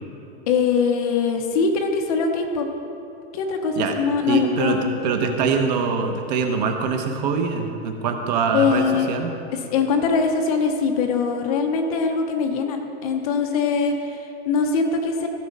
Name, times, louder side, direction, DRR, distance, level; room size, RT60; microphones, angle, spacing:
voice 1, 0.5-2.7 3.3-4.9 8.5-9.1 9.5-15.3, left 5 dB, 35° left, 4 dB, 0.8 m, -22 dB
voice 2, 4.3-9.3, right 5 dB, 40° right, 5 dB, 0.9 m, -23 dB
15.0 x 6.9 x 5.3 m, 2.9 s
supercardioid pair, 175°, 33 cm